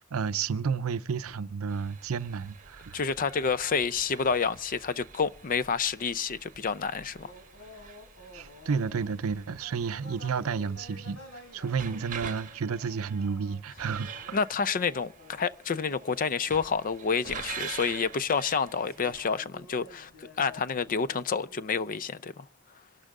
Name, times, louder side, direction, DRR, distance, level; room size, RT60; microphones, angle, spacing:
voice 1, 0.0-3.0 8.3-11.2 11.5-14.4, right 5 dB, 70° right, 0.5 m, -31 dB
sound 1, 1.7-19.2, right 6 dB, 40° right, 1.3 m, -46 dB
voice 2, 2.9-7.3 14.3-22.5, left 5 dB, 40° left, 0.5 m, -29 dB
sound 2, 7.1-21.8, left 2 dB, 65° left, 3.5 m, -52 dB
26.0 x 12.0 x 3.7 m
head